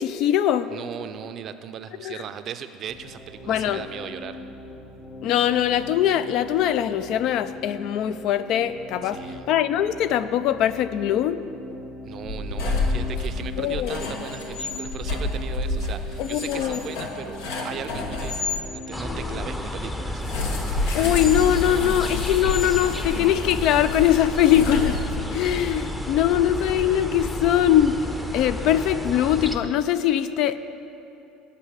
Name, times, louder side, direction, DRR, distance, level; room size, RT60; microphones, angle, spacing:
voice 1, 0.0-0.7 2.0-2.2 3.5-3.8 5.2-9.2 9.5-11.4 13.6-14.0 16.2-16.8 20.9-25.0 25.3-27.9 28.3-30.6, left 11 dB, 65° left, 13 dB, 0.4 m, -22 dB
voice 2, 0.7-4.5 9.0-9.5 12.0-20.2, right 8 dB, 50° right, 10 dB, 0.5 m, -37 dB
sound 1, 2.9-19.7, left 2 dB, 45° left, 1.5 m, -40 dB
sound 2, 12.2-18.6 20.2-25.4, left 3 dB, 85° left, 1.1 m, -29 dB
sound 3, 18.9-29.6, left 1 dB, 10° left, 0.7 m, -31 dB
8.2 x 5.4 x 7.2 m, 2.7 s
supercardioid pair, 105°, 0 cm